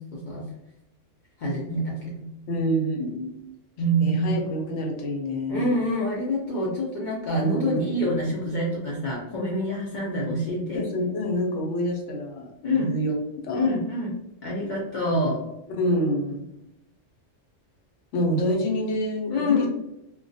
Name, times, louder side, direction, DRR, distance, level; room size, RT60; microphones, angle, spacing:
voice 1, 0.1-0.5 1.4-2.3 3.8-4.3 5.5-10.8 12.6-12.9 13.5-14.1 14.4-15.4 19.3-19.7, equal, 60° left, -5 dB, 0.5 m, -26 dB
voice 2, 2.5-3.3 4.0-5.8 7.4-7.8 10.7-12.5 12.7-13.7 15.7-16.5 18.1-19.7, equal, 75° left, 1 dB, 0.9 m, -27 dB
2.2 x 2.2 x 2.5 m, 0.86 s
omnidirectional pair, 1.3 m